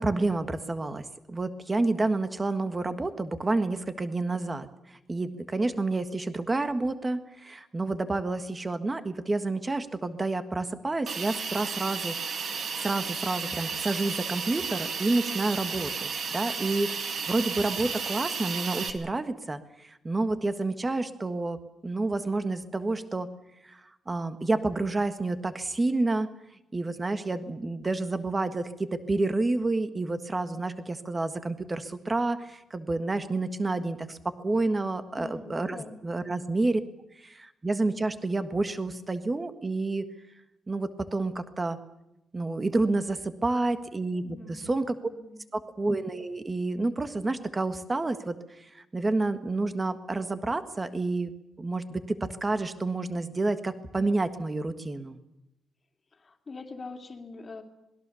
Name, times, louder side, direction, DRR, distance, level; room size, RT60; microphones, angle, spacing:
voice 1, 0.0-12.1 12.8-23.3 23.7-23.8 24.1-26.3 26.7-36.8 37.2-40.0 40.7-41.8 42.3-45.0 45.5-48.4 48.9-51.3 51.6-55.2, right 2 dB, 15° right, 10 dB, 1.6 m, -29 dB
Hiss, 11.1-18.9, right 5 dB, 45° right, 2.4 m, -33 dB
voice 2, 35.2-36.0 44.2-44.7 45.0-45.5 56.1-57.6, left 3 dB, 25° left, 4 dB, 2.9 m, -43 dB
26.5 x 21.0 x 7.0 m, 0.88 s
wide cardioid pair, 180°, 0 cm